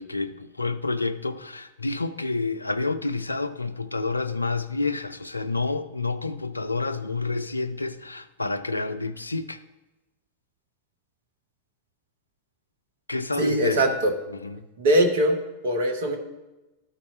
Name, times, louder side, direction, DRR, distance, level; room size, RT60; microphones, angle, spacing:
voice 1, 0.0-9.6 13.1-13.9 14.4-14.7, left 3 dB, 80° left, 0.4 m, -29 dB
voice 2, 13.4-14.1 14.8-16.2, right 1 dB, 55° right, 1.1 m, -22 dB
12.5 x 4.3 x 4.5 m
figure-of-eight pair, 90°, 0 cm